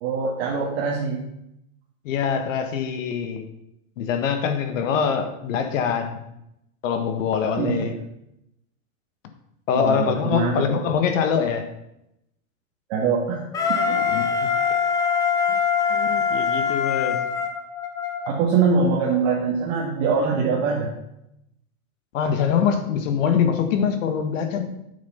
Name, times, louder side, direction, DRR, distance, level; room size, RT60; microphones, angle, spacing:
voice 1, 0.0-1.2 7.6-7.9 9.7-10.6 12.9-13.4 13.7-14.0 18.3-20.9, right 5 dB, 50° right, -3 dB, 2.1 m, -23 dB
voice 2, 2.0-3.5 4.0-6.3 6.8-7.9 9.7-11.7 14.1-14.3 15.5-15.6 15.9-17.2 22.1-24.7, left 7 dB, 60° left, 8 dB, 1.6 m, -24 dB
Wind instrument woodwind instrument, 13.5-18.3, left 6 dB, 10° left, 0.5 m, -23 dB
9.2 x 7.2 x 5.8 m, 0.81 s
supercardioid pair, 155°, 42 cm